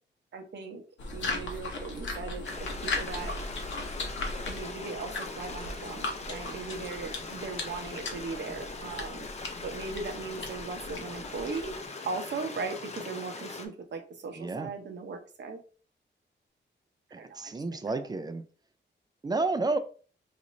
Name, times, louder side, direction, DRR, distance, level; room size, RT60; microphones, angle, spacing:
voice 1, 0.3-0.8 1.1-3.4 4.5-9.3 9.6-11.8 12.1-15.6 17.1-18.1, right 4 dB, 70° right, 0.7 m, -38 dB
sound 1, 1.0-11.8, left 3 dB, 80° left, 0.8 m, -38 dB
Stream, 2.4-13.7, left 3 dB, 35° left, 0.6 m, -41 dB
voice 2, 14.4-14.7 17.1-18.4 19.2-19.8, right 3 dB, 20° right, 0.3 m, -31 dB
4.1 x 2.5 x 3.1 m
wide cardioid pair, 120°, 19 cm